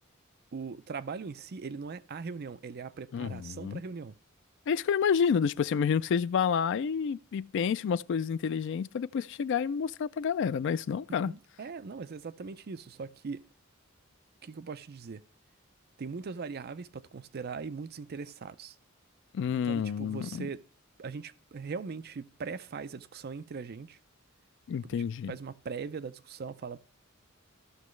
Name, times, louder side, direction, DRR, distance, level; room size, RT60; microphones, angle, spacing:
voice 1, 0.5-4.1 11.1-13.5 14.4-15.2 16.0-18.8 19.6-20.6 21.0-24.0 24.8-26.8, right 5 dB, 50° right, 0.5 m, -40 dB
voice 2, 3.1-3.8 4.7-11.3 19.3-20.5 24.7-25.3, left 7 dB, 60° left, 0.3 m, -29 dB
14.0 x 6.1 x 3.1 m
head